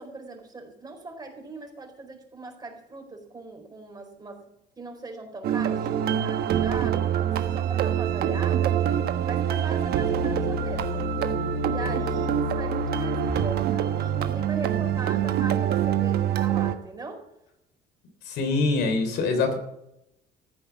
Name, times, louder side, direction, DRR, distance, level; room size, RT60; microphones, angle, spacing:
voice 1, 0.0-4.5 4.8-8.8 9.2-11.1 11.6-17.2, right 2 dB, 25° right, 3 dB, 4.3 m, -39 dB
sound 1, 5.4-16.7, right 8 dB, 70° right, 1.3 m, -25 dB
voice 2, 18.3-19.5, left 3 dB, 80° left, 6 dB, 3.6 m, -24 dB
15.0 x 9.1 x 7.2 m, 0.82 s
cardioid pair, 110°, 17 cm